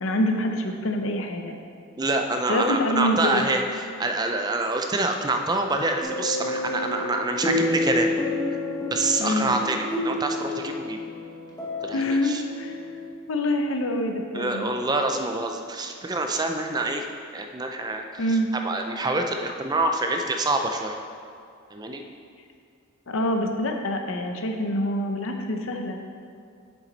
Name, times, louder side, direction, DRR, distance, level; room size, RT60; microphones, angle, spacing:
voice 1, 0.0-1.5 2.5-3.4 9.2-9.5 11.9-12.8 13.3-14.7 18.2-18.5 23.1-26.0, left 1 dB, 75° left, 4 dB, 0.7 m, -26 dB
voice 2, 2.0-8.1 8.9-11.0 11.8-12.4 14.3-17.1 17.3-18.3 18.6-21.0 21.7-22.0, right 2 dB, 20° right, 4 dB, 0.4 m, -26 dB
sound 1, 6.0-13.1, left 1 dB, 20° left, 1.0 m, -29 dB
7.3 x 7.1 x 4.0 m, 2.3 s
head